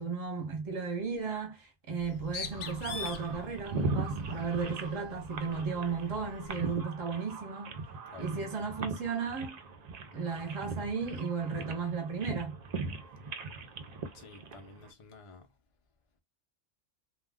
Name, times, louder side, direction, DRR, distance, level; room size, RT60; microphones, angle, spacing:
voice 1, 0.0-7.8 8.2-9.6 10.1-12.6, right 5 dB, 25° right, 0.8 m, -35 dB
Bird, 1.9-6.8, left 5 dB, 70° left, 0.9 m, -44 dB
sound 1, 2.5-14.9, right 3 dB, 60° right, 0.4 m, -39 dB
voice 2, 14.1-15.5, left 4 dB, 45° left, 0.4 m, -51 dB
2.3 x 2.2 x 3.5 m
omnidirectional pair, 1.3 m